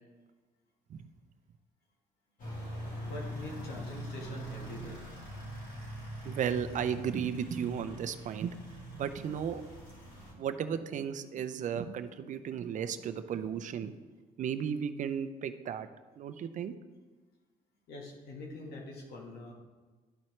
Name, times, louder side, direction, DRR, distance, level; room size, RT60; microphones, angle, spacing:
sound 1, 2.4-10.3, equal, 50° left, 2.3 m, -43 dB
voice 1, 3.1-5.0 17.9-19.5, left 2 dB, 70° left, -1 dB, 1.5 m, -44 dB
voice 2, 6.2-8.6 8.9-9.6 10.4-13.9 14.4-15.9 16.2-16.7, right 8 dB, 50° right, 10 dB, 0.5 m, -34 dB
12.0 x 4.4 x 3.2 m, 1.3 s
cardioid pair, 110°, 17 cm